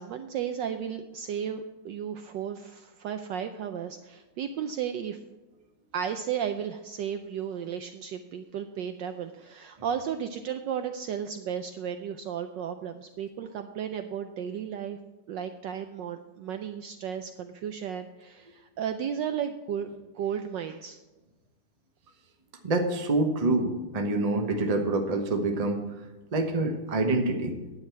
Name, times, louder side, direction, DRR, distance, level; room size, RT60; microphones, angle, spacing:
voice 1, 0.0-5.2 5.9-15.0 15.3-19.9 20.1-21.0, right 8 dB, 75° right, 8 dB, 1.1 m, -34 dB
voice 2, 22.6-25.8 26.3-27.5, right 2 dB, 30° right, 4 dB, 0.8 m, -26 dB
10.5 x 9.0 x 4.6 m, 1.1 s
omnidirectional pair, 2.4 m